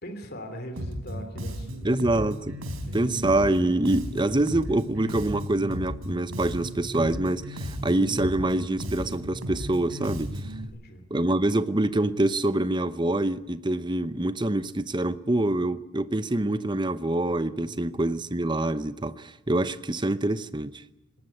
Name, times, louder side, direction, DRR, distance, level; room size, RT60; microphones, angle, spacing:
voice 1, 0.0-2.3 2.8-3.4 10.5-11.1 17.6-18.0, equal, 45° left, 3.0 m, -42 dB
Bass guitar, 0.8-10.6, equal, 70° right, 4.0 m, -35 dB
voice 2, 1.8-2.6 2.9-10.5 11.1-20.8, right 1 dB, 20° right, 0.7 m, -25 dB
20.0 x 18.5 x 9.9 m
head